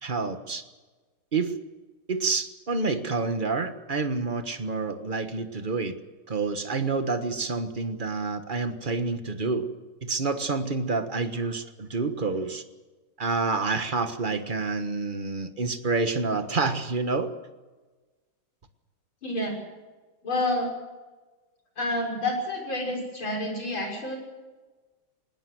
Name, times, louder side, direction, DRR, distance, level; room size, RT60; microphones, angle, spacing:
voice 1, 0.0-0.6 1.3-1.6 2.1-6.0 6.3-9.7 10.0-12.6 13.2-17.3, right 4 dB, 30° right, 8 dB, 1.4 m, -28 dB
voice 2, 19.2-19.6 20.2-20.7 21.8-24.2, left 1 dB, 75° left, 1 dB, 7.1 m, -29 dB
19.5 x 19.5 x 7.8 m, 1.3 s
omnidirectional pair, 2.2 m